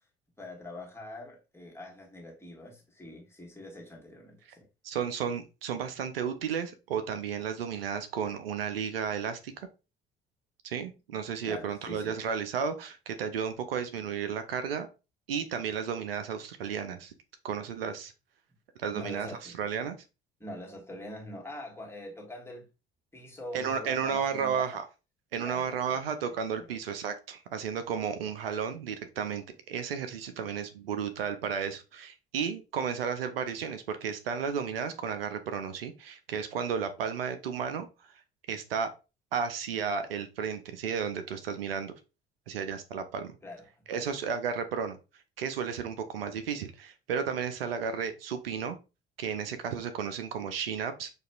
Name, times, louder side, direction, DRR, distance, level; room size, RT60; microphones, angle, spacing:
voice 1, 0.4-4.7 11.4-12.2 18.9-19.6 20.4-22.7 23.1-24.8 25.3-26.0 26.6-26.8 43.4-44.1, left 1 dB, 10° left, 1.5 m, -44 dB
voice 2, 4.8-9.5 10.6-14.9 15.3-17.1 17.4-18.1 18.8-20.0 23.5-24.8 25.3-37.9 38.5-38.9 39.3-41.9 42.5-43.3 43.9-45.0 45.4-48.8 49.2-51.1, right 7 dB, 80° right, 0.5 m, -33 dB
6.3 x 2.4 x 2.3 m
figure-of-eight pair, 45°, 29 cm